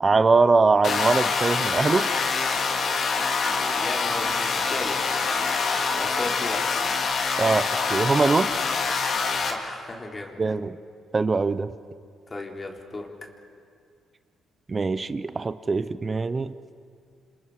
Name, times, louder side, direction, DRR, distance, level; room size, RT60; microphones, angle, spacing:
voice 1, 0.0-2.1 7.4-8.5 10.4-10.8 11.1-11.7 14.7-16.5, right 4 dB, 30° right, 13 dB, 0.7 m, -22 dB
sound 1, 0.8-9.5, left 4 dB, 60° left, 2.4 m, -25 dB
sound 2, 1.6-7.1, equal, 5° left, 3.7 m, -40 dB
voice 2, 3.5-5.1 6.0-6.7 9.4-10.4 12.3-13.1, left 2 dB, 30° left, 1 dB, 3.4 m, -35 dB
28.0 x 26.5 x 4.8 m, 2.3 s
cardioid pair, 90°, 0 cm